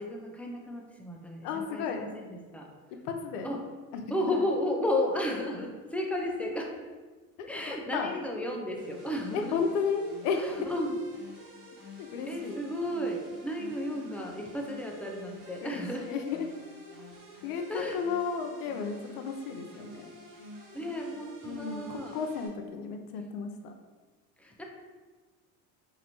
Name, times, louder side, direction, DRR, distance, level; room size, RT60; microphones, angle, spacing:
voice 1, 0.0-2.7 3.4-3.7 4.1-6.7 7.5-9.6 10.3-11.0 12.3-16.1 17.7-18.0 20.7-22.2 24.4-24.7, left 1 dB, 5° left, 0 dB, 0.4 m, -33 dB
voice 2, 1.4-2.2 3.1-3.5 7.4-8.1 9.3-10.4 12.0-12.6 15.6-16.4 17.4-17.6 17.9-20.1 21.4-23.7, left 6 dB, 85° left, 5 dB, 0.6 m, -33 dB
sound 1, 8.8-22.5, left 1 dB, 80° right, 1.2 m, -49 dB
4.0 x 2.6 x 2.9 m, 1.4 s
supercardioid pair, 80°, 46 cm